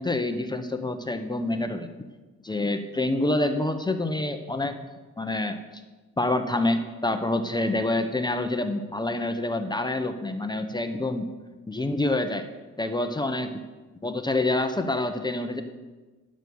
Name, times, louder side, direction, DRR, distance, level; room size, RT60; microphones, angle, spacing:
voice 1, 0.0-1.9 2.4-4.7 5.2-5.6 6.2-11.3 11.7-12.5 12.8-13.5 14.0-15.6, left 2 dB, 15° left, 7 dB, 0.8 m, -27 dB
11.0 x 6.2 x 7.0 m, 1.2 s
cardioid pair, 90°, 30 cm